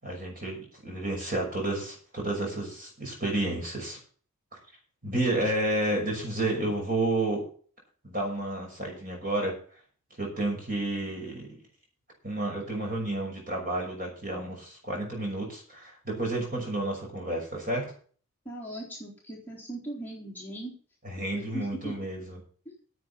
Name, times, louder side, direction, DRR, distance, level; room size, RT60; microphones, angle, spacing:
voice 1, 0.0-4.0 5.0-7.4 8.0-9.6 10.2-11.6 12.2-17.9 21.0-22.4, right 1 dB, 40° right, 0 dB, 6.1 m, -31 dB
voice 2, 18.5-20.7 21.3-22.0 22.7-22.8, right 1 dB, 10° left, -6 dB, 3.9 m, -39 dB
10.0 x 8.3 x 7.2 m, 0.42 s
head